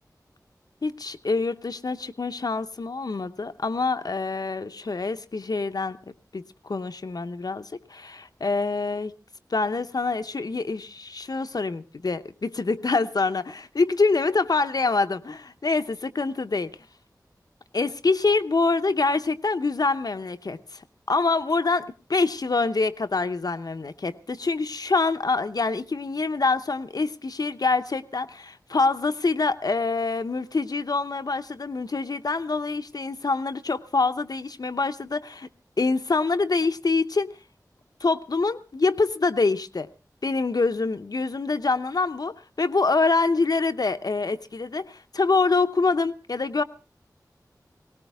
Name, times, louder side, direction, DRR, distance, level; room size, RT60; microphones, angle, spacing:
voice 1, 0.8-9.1 9.5-16.7 17.7-20.8 21.1-35.5 35.8-37.3 38.0-39.9 40.2-46.6, left 3 dB, 65° left, 9 dB, 0.8 m, -25 dB
19.0 x 18.0 x 3.5 m, 0.33 s
wide cardioid pair, 60°, 7 cm